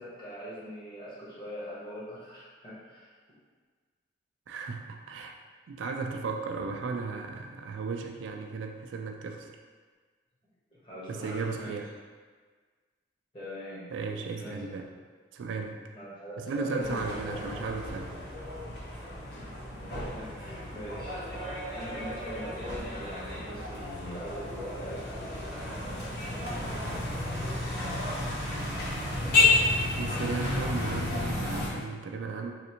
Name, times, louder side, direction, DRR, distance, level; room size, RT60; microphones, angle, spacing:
voice 1, 0.0-3.1 10.7-11.8 13.3-13.9 14.3-14.8 15.9-17.5 19.3-26.2, equal, 25° left, -10 dB, 1.1 m, -42 dB
voice 2, 4.5-5.4 5.7-9.5 11.1-11.9 13.9-14.9 15.3-15.8 16.4-18.1 30.0-32.5, right 4 dB, 80° right, 4 dB, 0.3 m, -35 dB
sound 1, 16.8-31.7, left 2 dB, 55° left, 0.7 m, -31 dB
3.1 x 2.6 x 2.8 m, 1.5 s
head